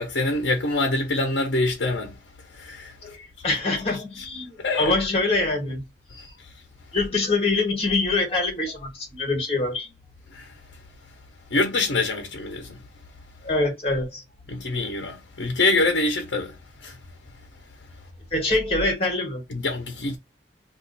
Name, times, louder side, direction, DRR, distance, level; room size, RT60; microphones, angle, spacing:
voice 1, 0.0-2.1 2.6-2.9 4.6-4.9 10.3-10.5 11.5-12.8 14.5-16.5 16.8-17.0 19.5-20.2, left 2 dB, 75° left, 0.7 m, -25 dB
voice 2, 3.0-5.8 6.1-6.2 6.9-9.9 13.4-14.2 18.3-19.4, left 2 dB, 30° left, 1.4 m, -24 dB
2.4 x 2.4 x 3.8 m
head